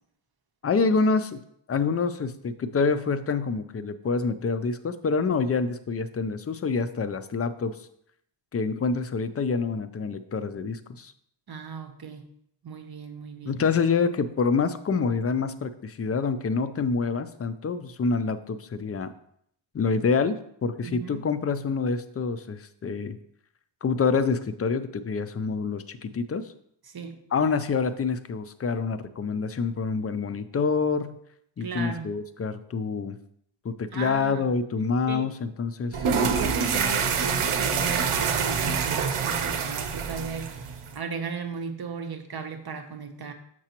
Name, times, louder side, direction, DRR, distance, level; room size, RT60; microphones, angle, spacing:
voice 1, 0.6-1.4 1.7-7.8 8.5-11.1 13.5-19.1 19.7-23.2 23.8-26.5 27.3-31.2 31.6-33.2 33.6-36.1, left 4 dB, 30° left, 11 dB, 0.4 m, -27 dB
voice 2, 11.5-12.3 12.6-13.6 20.8-21.2 26.9-27.2 31.6-32.1 33.9-34.5 35.1-35.2 36.1-40.5 40.9-43.3, right 5 dB, 50° right, 5 dB, 0.9 m, -36 dB
sound 1, 35.9-41.0, right 6 dB, 85° right, 0.7 m, -26 dB
6.6 x 6.0 x 2.9 m, 0.70 s
wide cardioid pair, 90°, 49 cm